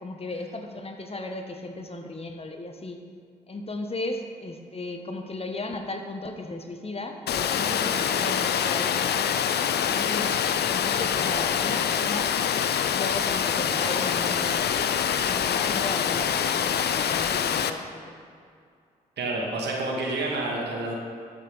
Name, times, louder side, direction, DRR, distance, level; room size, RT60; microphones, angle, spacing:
voice 1, 0.0-3.0 3.5-9.3 9.8-10.4 10.6-12.3 12.9-18.1, left 2 dB, 30° left, 5 dB, 1.2 m, -35 dB
Water, 7.3-17.7, left 8 dB, 60° left, 0.6 m, -25 dB
voice 2, 19.2-20.9, right 2 dB, 60° right, -2 dB, 2.4 m, -29 dB
12.5 x 7.7 x 4.1 m, 2.3 s
hypercardioid pair, 45°, 20 cm